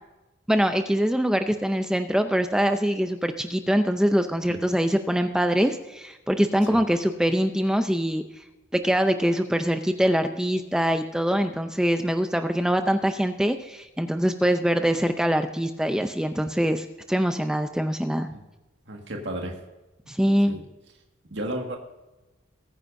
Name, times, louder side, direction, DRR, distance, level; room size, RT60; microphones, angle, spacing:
voice 1, 0.5-8.2 8.7-18.3 20.1-20.6, equal, 5° right, 7 dB, 0.5 m, -23 dB
voice 2, 18.9-19.6 20.1-20.2 20.5-20.6 21.3-21.8, right 1 dB, 65° right, 1 dB, 1.8 m, -33 dB
21.0 x 9.7 x 2.7 m, 1.0 s
head